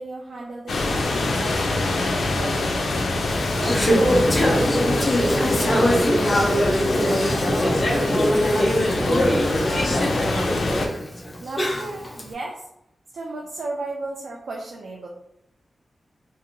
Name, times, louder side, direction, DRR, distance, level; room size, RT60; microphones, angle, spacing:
voice 1, 0.0-2.8 3.6-6.7 11.4-12.6 13.1-15.1, right 2 dB, 80° right, -1 dB, 0.4 m, -33 dB
sound 1, 0.7-10.9, left 2 dB, 85° left, 0.4 m, -25 dB
Conversation / Chatter, 3.3-12.2, equal, 25° left, 0.5 m, -22 dB
voice 2, 7.6-10.9, left 1 dB, 55° left, -3 dB, 1.0 m, -28 dB
2.8 x 2.5 x 2.6 m, 0.79 s
wide cardioid pair, 155°, 0 cm